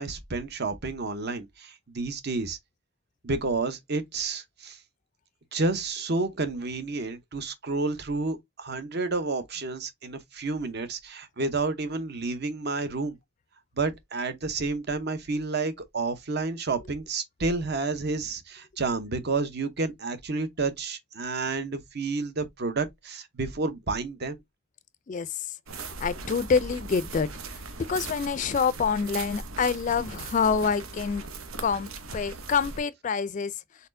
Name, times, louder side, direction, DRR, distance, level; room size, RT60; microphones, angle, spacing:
voice 1, 0.0-2.6 3.2-4.8 5.5-13.1 13.8-24.4, right 3 dB, 50° right, 0.9 m, -30 dB
voice 2, 25.1-27.6 27.9-31.3 31.6-33.9, left 5 dB, 35° left, 0.3 m, -27 dB
sound 1, 25.7-32.8, right 3 dB, 80° right, 0.9 m, -39 dB
4.2 x 4.1 x 2.6 m
head